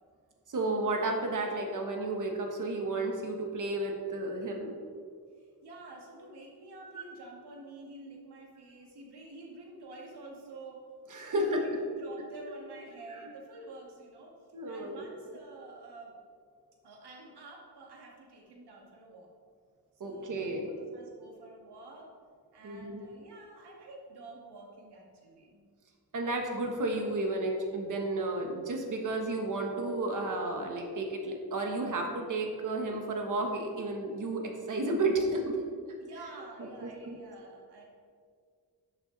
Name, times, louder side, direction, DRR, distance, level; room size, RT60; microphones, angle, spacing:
voice 1, 0.5-4.7 11.1-11.8 14.5-15.0 20.0-20.7 22.6-23.0 26.1-35.6 36.8-37.2, right 2 dB, 50° right, 2 dB, 1.3 m, -32 dB
voice 2, 5.3-10.8 11.3-14.3 14.7-16.2 16.8-19.3 19.9-22.1 22.5-25.6 36.0-37.8, right 2 dB, 80° right, -1 dB, 2.2 m, -49 dB
11.5 x 6.7 x 4.0 m, 2.1 s
wide cardioid pair, 170°, 39 cm